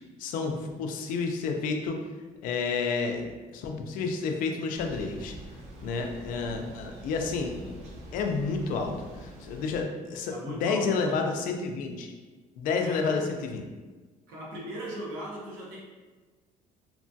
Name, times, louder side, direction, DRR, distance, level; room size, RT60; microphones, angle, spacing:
voice 1, 0.2-2.0 2.4-5.3 5.8-7.5 8.1-12.1 12.6-13.6, left 4 dB, 70° left, 4 dB, 0.4 m, -30 dB
Thunder, 4.7-9.8, right 1 dB, 50° right, 0.5 m, -45 dB
voice 2, 10.3-11.3 12.8-13.4 14.3-15.8, right 1 dB, 85° right, -4 dB, 0.8 m, -39 dB
2.9 x 2.2 x 2.6 m, 1.3 s
cardioid pair, 145°, 15 cm